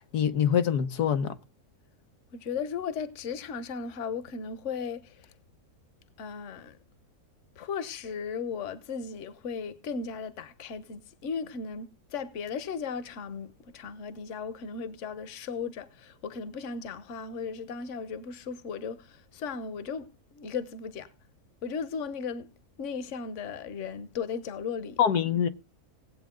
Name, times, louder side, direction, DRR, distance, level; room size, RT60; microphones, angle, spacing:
voice 1, 0.1-1.4 25.0-25.5, left 8 dB, 85° left, 1.6 m, -24 dB
voice 2, 2.3-5.3 6.2-6.8 7.6-21.1 21.6-22.5 22.8-25.0, left 6 dB, 55° left, 1.3 m, -36 dB
18.5 x 8.4 x 3.8 m
omnidirectional pair, 1.6 m